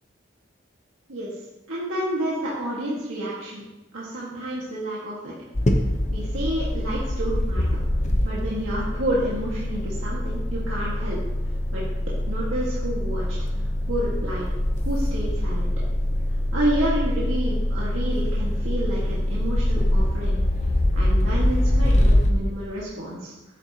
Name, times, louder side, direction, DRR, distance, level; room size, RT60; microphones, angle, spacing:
voice 1, 1.7-3.6 3.9-5.3 6.1-7.8 8.2-11.2 11.7-11.8 12.3-13.3 13.9-14.5 14.8-15.7 16.5-20.4 20.9-23.3, right 1 dB, 90° right, -7 dB, 1.9 m, -29 dB
sound 1, 5.5-22.3, left 1 dB, 35° left, 0.9 m, -24 dB
11.0 x 9.0 x 3.0 m, 1.0 s
head